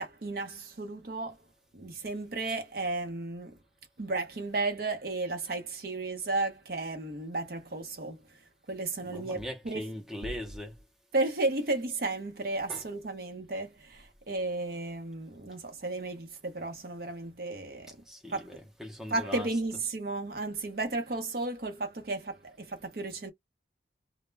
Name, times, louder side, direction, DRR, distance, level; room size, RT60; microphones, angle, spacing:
voice 1, 0.0-1.4 1.7-3.5 4.0-8.2 8.7-9.4 9.6-9.9 11.1-18.0 18.3-18.6 19.1-23.3, right 2 dB, 55° right, 0.6 m, -33 dB
voice 2, 9.1-10.7 12.7-12.8 18.1-19.5, left 1 dB, 5° right, 0.5 m, -40 dB
2.1 x 2.0 x 3.2 m
head